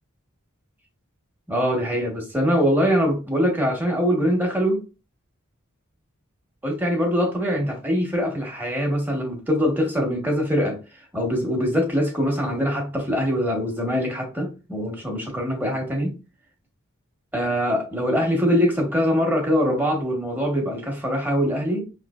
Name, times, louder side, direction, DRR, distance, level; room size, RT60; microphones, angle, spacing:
voice 1, 1.5-4.8 6.6-10.8 11.1-16.1 17.3-21.8, equal, 10° right, 1.2 m, -23 dB
5.7 x 3.2 x 2.4 m
head